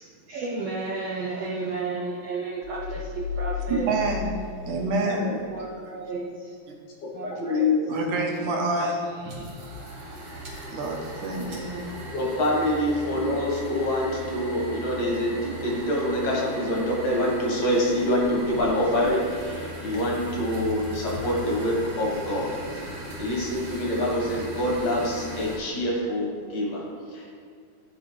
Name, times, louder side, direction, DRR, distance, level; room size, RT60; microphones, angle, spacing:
voice 1, 0.3-3.9 5.5-6.2 7.1-7.7, right 3 dB, 90° right, -4 dB, 1.3 m, -32 dB
sound 1, 2.6-5.5, left 8 dB, 85° left, 1.1 m, -34 dB
voice 2, 3.7-4.4 4.7-5.3 7.9-9.7 10.7-11.9, right 2 dB, 70° right, 0 dB, 2.3 m, -28 dB
voice 3, 7.4-7.9 12.1-22.5 22.8-27.4, left 1 dB, 65° left, -3 dB, 2.7 m, -26 dB
sound 2, 9.3-25.6, right 1 dB, 45° right, 2.8 m, -38 dB
14.0 x 5.3 x 3.3 m, 2.2 s
omnidirectional pair, 3.9 m